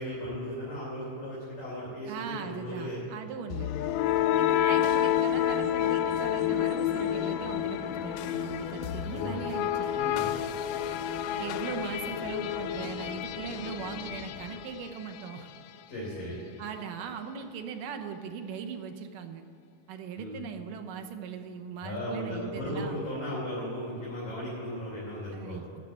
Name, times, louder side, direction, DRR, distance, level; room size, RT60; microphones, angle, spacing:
voice 1, 0.0-3.0 9.1-9.4 9.9-10.3 15.9-16.4 20.2-20.4 21.8-25.6, equal, 45° left, -8 dB, 4.2 m, -36 dB
voice 2, 2.1-3.7 4.4-10.0 11.4-15.5 16.6-19.4 19.9-23.0 25.3-25.7, right 6 dB, 80° right, 6 dB, 2.5 m, -39 dB
sound 1, 3.5-15.4, left 11 dB, 85° left, 2.2 m, -29 dB
12.0 x 6.8 x 8.5 m, 2.8 s
omnidirectional pair, 3.8 m